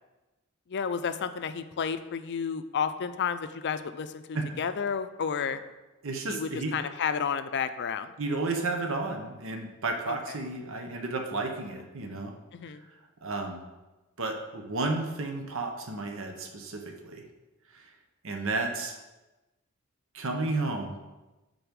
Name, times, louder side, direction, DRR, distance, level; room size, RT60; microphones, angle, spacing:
voice 1, 0.7-5.6 6.3-8.1 10.1-10.2 12.5-12.8, left 6 dB, 55° left, 11 dB, 0.5 m, -31 dB
voice 2, 6.0-6.7 8.2-12.3 12.7-12.8 13.2-13.6 14.2-17.2 17.7-17.9 18.2-19.0 20.1-21.0, right 3 dB, 65° right, 3 dB, 0.9 m, -32 dB
9.3 x 4.0 x 5.3 m, 1.1 s
head